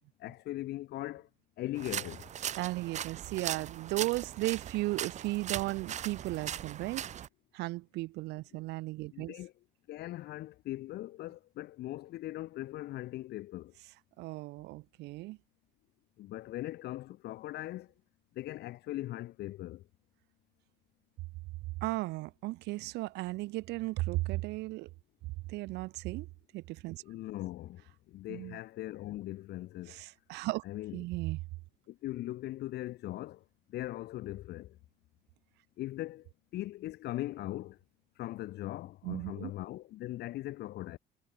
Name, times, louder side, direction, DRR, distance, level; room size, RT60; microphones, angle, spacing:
voice 1, 0.2-1.3 1.6-2.3 9.1-9.5 9.9-13.7 16.2-17.9 18.3-19.9 27.0-30.0 30.6-31.0 31.9-33.4 33.7-34.8 35.8-37.8 38.2-41.0, left 15 dB, 75° left, 1.9 m, -40 dB
sound 1, 1.8-7.3, right 10 dB, 45° right, 0.6 m, -39 dB
voice 2, 2.6-7.0 7.5-9.3 14.2-15.4 21.8-24.9 25.5-26.3 26.5-27.0 28.3-28.6 29.9-30.6 30.9-31.4 39.0-39.5, right 20 dB, 85° right, 1.1 m, -35 dB
cardioid pair, 110°, 17 cm